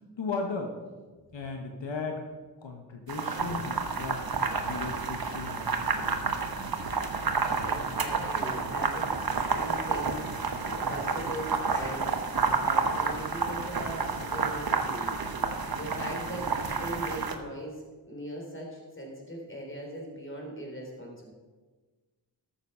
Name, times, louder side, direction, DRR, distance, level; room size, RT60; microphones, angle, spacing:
voice 1, 0.2-0.7 1.3-2.2 2.6-4.2 4.6-6.4, left 4 dB, 85° left, 3 dB, 1.2 m, -36 dB
sound 1, 3.1-17.3, right 4 dB, 55° right, 1.1 m, -30 dB
voice 2, 7.6-9.1 9.5-10.3 10.7-21.3, right 1 dB, 30° left, -1 dB, 3.5 m, -40 dB
13.0 x 7.2 x 5.5 m, 1.3 s
wide cardioid pair, 65°, 43 cm